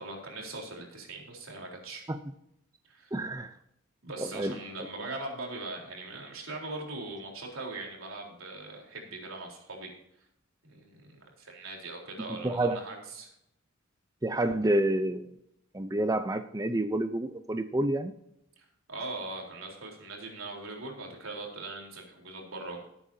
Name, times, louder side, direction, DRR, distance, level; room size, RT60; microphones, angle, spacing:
voice 1, 0.0-2.0 2.9-3.1 4.0-9.9 10.6-13.3 18.6-22.9, right 2 dB, 80° right, 0 dB, 3.9 m, -41 dB
voice 2, 3.1-3.5 4.2-4.5 12.4-12.8 14.2-15.3 15.7-18.1, right 1 dB, 15° right, 9 dB, 0.6 m, -28 dB
18.0 x 8.9 x 2.8 m, 0.78 s
head